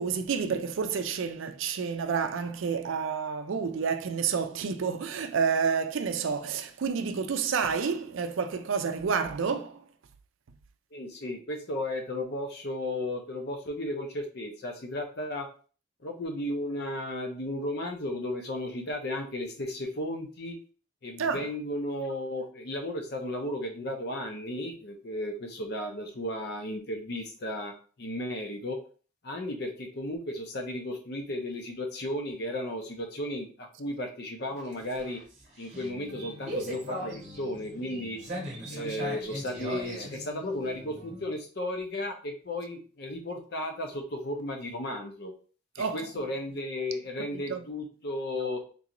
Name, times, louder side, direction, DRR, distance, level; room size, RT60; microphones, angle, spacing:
voice 1, 0.0-9.8 21.2-21.5 45.8-46.1 47.3-47.6, right 6 dB, 75° right, 0.4 m, -29 dB
voice 2, 10.9-15.5 16.0-20.6 21.0-28.8 29.2-35.2 35.6-38.2 38.7-45.3 45.8-48.6, left 1 dB, 50° left, 0.7 m, -34 dB
sound 1, 34.5-41.3, equal, 35° right, 1.0 m, -39 dB
3.8 x 2.5 x 2.9 m
head